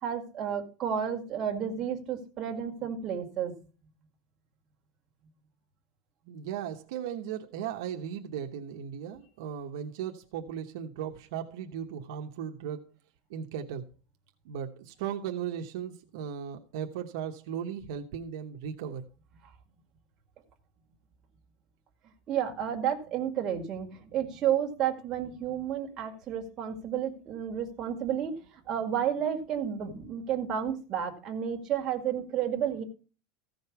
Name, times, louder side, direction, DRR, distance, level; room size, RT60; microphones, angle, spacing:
voice 1, 0.0-3.5 22.3-28.3 28.7-32.8, right 9 dB, 25° right, 2.0 m, -31 dB
voice 2, 6.2-12.8 13.3-13.9 14.4-19.0, right 8 dB, 70° right, 1.0 m, -37 dB
15.0 x 5.3 x 5.9 m
supercardioid pair, 165°, 2 cm